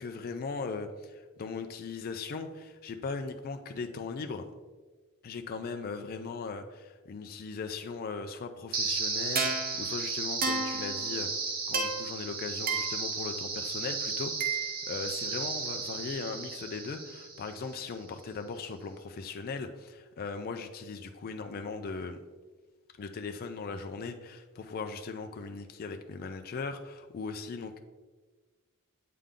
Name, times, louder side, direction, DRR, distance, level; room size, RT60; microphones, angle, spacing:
voice 1, 0.0-4.5 5.2-11.3 11.7-22.2 23.0-27.8, left 4 dB, 40° left, 6 dB, 0.3 m, -38 dB
sound 1, 8.7-17.8, right 4 dB, 40° right, 0.8 m, -33 dB
8.4 x 3.5 x 3.7 m, 1.3 s
head